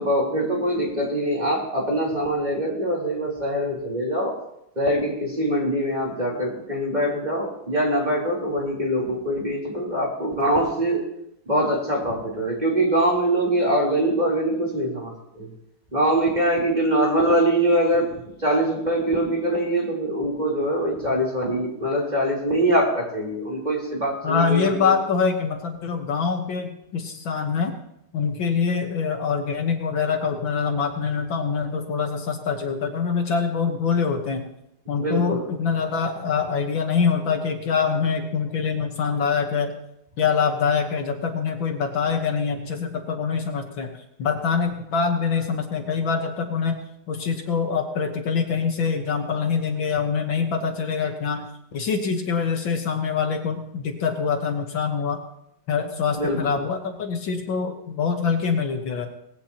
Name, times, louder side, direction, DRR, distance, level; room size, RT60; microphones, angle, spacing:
voice 1, 0.0-4.3 4.8-11.0 11.5-15.5 15.9-18.1 18.4-25.0 34.9-35.4 56.2-56.4, right 1 dB, 20° right, -3 dB, 3.7 m, -23 dB
voice 2, 24.2-27.7 28.1-34.5 34.9-39.8 40.2-43.9 44.2-46.8 47.1-55.2 55.7-59.1, left 5 dB, 65° left, 4 dB, 2.0 m, -24 dB
19.0 x 16.5 x 2.9 m, 0.80 s
omnidirectional pair, 2.3 m